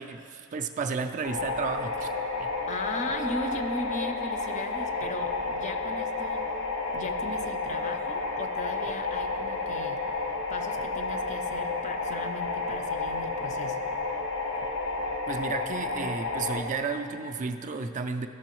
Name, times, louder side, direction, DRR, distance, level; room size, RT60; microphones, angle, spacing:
voice 1, 0.0-2.1 2.4-2.5 15.3-18.3, right 4 dB, 35° right, 7 dB, 0.3 m, -32 dB
sound 1, 1.2-16.6, left 3 dB, 90° left, 1.0 m, -31 dB
voice 2, 2.7-6.5 6.9-10.1 10.5-13.9, left 2 dB, 35° left, 6 dB, 0.5 m, -37 dB
14.0 x 6.1 x 3.0 m, 2.6 s
head